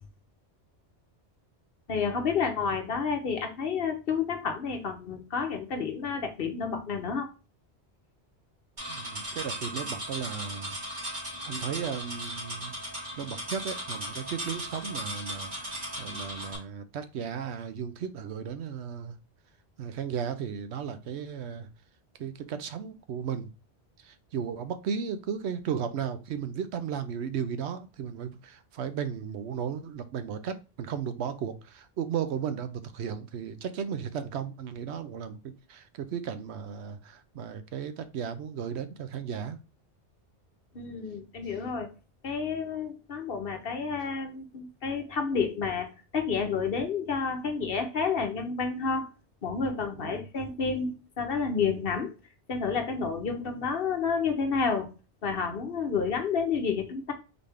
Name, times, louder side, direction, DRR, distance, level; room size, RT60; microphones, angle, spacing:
voice 1, 1.9-7.3 40.7-41.9 42.2-49.1 49.4-52.1 52.5-54.9 55.2-57.1, left 5 dB, 60° left, 1.0 m, -30 dB
sound 1, 8.8-16.6, equal, 45° right, 2.1 m, -37 dB
voice 2, 8.9-10.8 11.5-12.8 13.2-19.1 19.8-21.7 22.2-23.5 24.0-39.6 50.0-50.2, right 7 dB, 75° right, 0.8 m, -35 dB
4.1 x 3.2 x 3.5 m
omnidirectional pair, 1.2 m